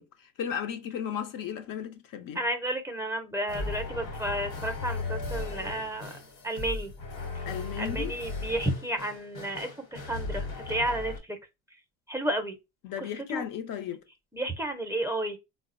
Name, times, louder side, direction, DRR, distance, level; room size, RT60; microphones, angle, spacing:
voice 1, 0.0-2.4 7.4-8.1 12.8-14.0, left 8 dB, 55° left, 0.6 m, -35 dB
voice 2, 2.3-6.2 6.4-6.9 7.3-7.4 7.8-11.4 12.1-12.6 13.0-13.4 14.3-15.4, right 1 dB, 5° right, 0.5 m, -32 dB
sound 1, 3.5-11.2, left 3 dB, 70° left, 1.1 m, -36 dB
3.7 x 2.1 x 2.5 m
supercardioid pair, 85°, 40 cm